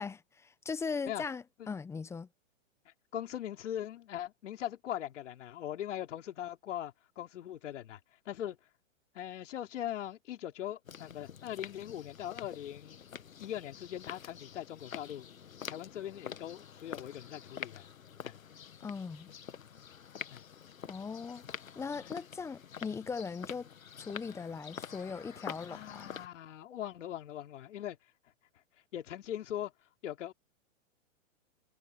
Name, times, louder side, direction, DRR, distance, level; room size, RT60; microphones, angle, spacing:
voice 1, 0.0-2.3 18.8-19.3 20.9-21.4 21.8-23.7 24.0-26.1, left 5 dB, 5° left, 0.7 m, -39 dB
voice 2, 3.1-8.0 8.3-8.6 9.2-13.0 13.4-15.3 15.7-17.8 18.2-18.4 20.3-20.4 22.0-22.1 25.7-28.0 28.9-29.7 30.0-30.3, left 11 dB, 65° left, 3.5 m, -40 dB
sound 1, 10.8-26.3, left 8 dB, 85° left, 1.6 m, -47 dB
hypercardioid pair, 130°, 40 cm